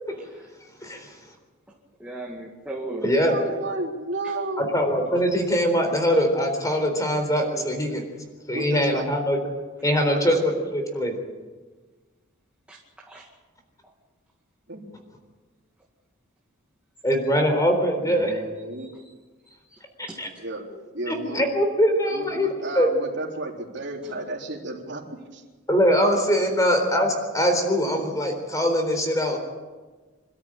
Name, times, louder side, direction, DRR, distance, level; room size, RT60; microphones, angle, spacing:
voice 1, 0.8-1.1 3.0-3.4 4.6-8.0 8.5-9.4 9.8-11.2 17.0-18.4 20.2-20.3 21.1-22.5 22.8-22.9 25.7-29.4, equal, 15° left, 5 dB, 3.9 m, -22 dB
voice 2, 2.0-3.1 4.2-4.3 6.1-6.2 7.4-8.1 12.7-13.3 18.8-18.9 19.5-19.8 20.1-20.2 28.9-29.0, right 1 dB, 5° right, -3 dB, 2.1 m, -39 dB
voice 3, 3.3-4.7 8.5-9.1 10.1-10.4 14.7-14.8 18.0-18.9 20.4-20.6 20.9-21.5 22.1-25.4 26.7-26.8, right 2 dB, 55° right, 0 dB, 3.7 m, -33 dB
26.5 x 13.5 x 8.9 m, 1.3 s
head